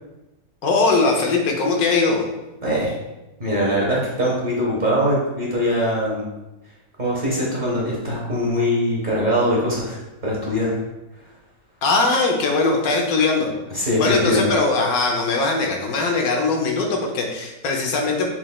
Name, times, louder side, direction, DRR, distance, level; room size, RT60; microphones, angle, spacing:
voice 1, 0.6-2.2 11.8-13.5 14.0-18.3, left 3 dB, 75° left, 1 dB, 1.2 m, -20 dB
voice 2, 2.6-2.9 3.4-6.2 7.0-10.0 10.2-10.8 13.7-14.5, equal, 40° right, -5 dB, 0.8 m, -22 dB
5.8 x 3.2 x 2.3 m, 1.0 s
omnidirectional pair, 1.6 m